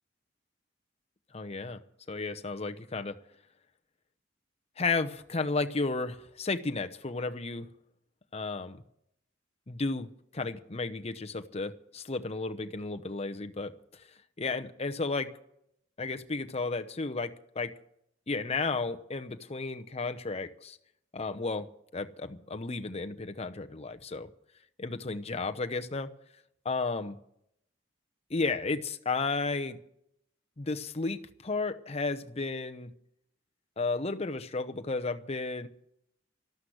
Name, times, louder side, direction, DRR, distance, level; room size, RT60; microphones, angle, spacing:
voice 1, 1.3-1.8 2.1-3.2 4.8-7.7 8.3-8.8 9.7-13.7 14.4-15.3 16.0-17.7 18.3-20.8 21.1-24.3 24.8-26.1 26.6-27.2 28.3-29.8 30.6-32.9 33.8-35.7, left 3 dB, 35° left, 0.8 m, -33 dB
13.0 x 12.5 x 7.9 m
head